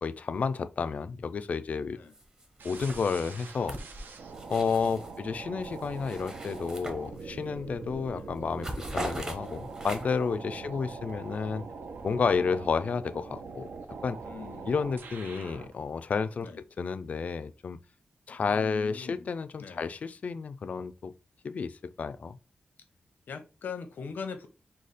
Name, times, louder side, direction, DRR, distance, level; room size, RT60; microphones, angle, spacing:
voice 1, 0.0-2.0 2.6-3.8 4.5-11.6 12.0-13.7 14.0-14.2 14.7-16.5 16.8-17.8 18.3-21.1 21.4-22.4, left 5 dB, 50° left, 0.3 m, -31 dB
sound 1, 2.1-2.5 2.7-5.2 5.6-7.5 7.9-8.1 8.4-10.3, right 1 dB, 25° right, 0.8 m, -40 dB
sound 2, 2.6-15.7, right 4 dB, 85° right, 0.6 m, -43 dB
voice 2, 4.8-5.2 8.1-8.3 10.6-10.8 12.3-12.5 14.2-14.8 16.4-16.6 18.4-19.3 19.6-19.9 23.3-24.5, left 6 dB, 85° left, 0.7 m, -42 dB
4.9 x 2.3 x 4.0 m
wide cardioid pair, 175°, 3 cm